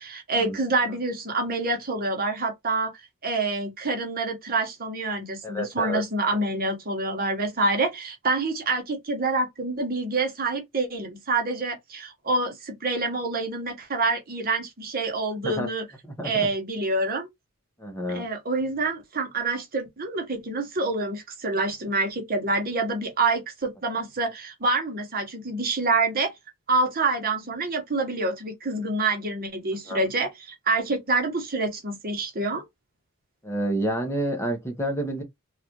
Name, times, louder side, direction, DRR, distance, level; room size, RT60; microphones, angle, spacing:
voice 1, 0.0-2.9 3.2-15.8 16.2-17.3 18.1-26.3 26.7-32.6, right 3 dB, 45° right, 1.0 m, -27 dB
voice 2, 5.4-6.0 15.4-15.7 16.0-16.5 17.8-18.3 29.8-30.0 33.4-35.2, right 1 dB, 10° left, 0.8 m, -29 dB
3.2 x 2.4 x 2.8 m
head